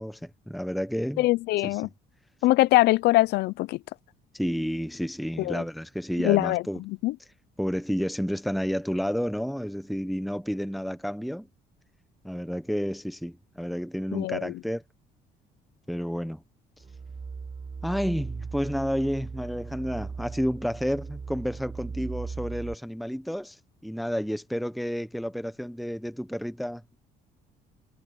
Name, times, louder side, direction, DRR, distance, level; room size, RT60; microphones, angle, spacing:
voice 1, 0.0-1.2 1.6-1.8 4.3-6.8 7.6-11.5 12.2-14.8 15.9-16.4 17.8-27.0, equal, ahead, 0.9 m, -30 dB
voice 2, 1.2-1.9 2.4-3.8 5.4-5.5 6.2-6.6 7.0-7.1 14.1-14.5, left 18 dB, 75° left, 0.5 m, -22 dB
sound 1, 16.8-22.7, right 5 dB, 30° right, 4.2 m, -38 dB
cardioid pair, 110°, 17 cm